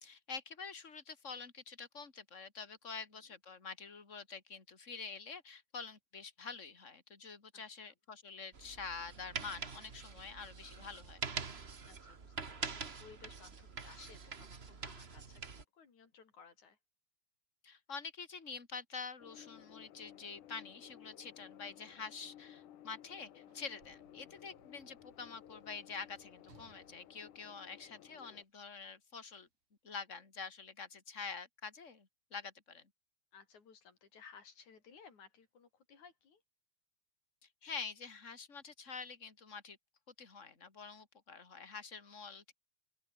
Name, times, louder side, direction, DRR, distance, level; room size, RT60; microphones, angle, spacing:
voice 1, 0.0-11.2 17.6-29.5 29.8-32.9 37.4-39.8 40.2-42.5, left 5 dB, 25° left, 3.2 m, -47 dB
voice 2, 7.5-7.9 11.9-16.8 21.6-21.9 28.2-28.4 33.3-36.4, left 6 dB, 70° left, 5.0 m, -59 dB
sound 1, 8.5-15.6, right 5 dB, 35° right, 1.1 m, -45 dB
sound 2, 19.2-28.4, left 11 dB, 85° left, 3.0 m, -57 dB
Sliding door / Slam, 23.0-28.4 29.3-29.5, right 5 dB, 80° right, 6.2 m, -68 dB
open air
omnidirectional pair, 3.5 m